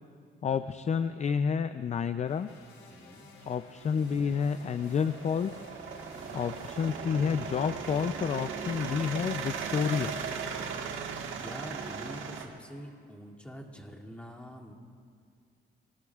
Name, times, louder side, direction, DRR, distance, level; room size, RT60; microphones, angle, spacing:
voice 1, 0.4-2.5 3.5-5.6 6.3-10.2, left 6 dB, 35° left, 11 dB, 0.4 m, -29 dB
sound 1, 2.3-9.1, left 3 dB, 90° left, 4.0 m, -53 dB
voice 2, 2.9-3.3 6.0-6.4 11.3-14.7, equal, 5° left, -1 dB, 2.5 m, -46 dB
sound 2, 3.4-12.5, right 6 dB, 80° right, 1.6 m, -38 dB
sound 3, 7.6-13.1, right 2 dB, 20° right, 2.6 m, -53 dB
26.0 x 19.0 x 2.4 m, 2.2 s
cardioid pair, 90°, 20 cm